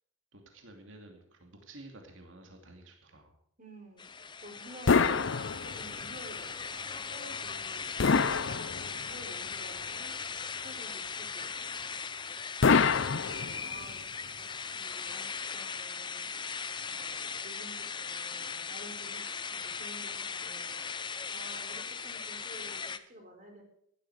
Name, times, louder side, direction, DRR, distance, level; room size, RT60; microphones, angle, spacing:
voice 1, 0.3-3.3, right 2 dB, 65° right, 3 dB, 2.6 m, -52 dB
voice 2, 3.6-5.3 5.6-10.2 10.6-12.0 12.8-20.8 21.3-23.6, right 1 dB, 40° right, 3 dB, 4.4 m, -52 dB
sound 1, 4.0-23.0, left 6 dB, 20° left, 0.6 m, -39 dB
sound 2, 4.9-6.1 8.0-9.2 12.6-13.9, left 5 dB, 60° left, 0.6 m, -26 dB
16.0 x 12.5 x 5.0 m, 0.70 s
head